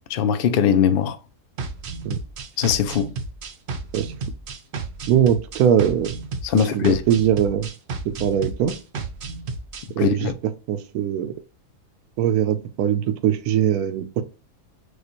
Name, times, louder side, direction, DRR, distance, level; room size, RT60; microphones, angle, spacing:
voice 1, 0.1-1.2 2.6-3.2 6.4-7.0 10.0-10.3, left 8 dB, 75° left, 0.5 m, -20 dB
sound 1, 1.6-9.9, right 4 dB, 55° right, 0.6 m, -33 dB
voice 2, 5.1-6.2 6.7-7.7 8.0-8.7 10.0-10.3 10.7-11.3 12.2-14.2, right 9 dB, 80° right, 1.1 m, -21 dB
6.5 x 2.3 x 3.0 m
omnidirectional pair, 1.6 m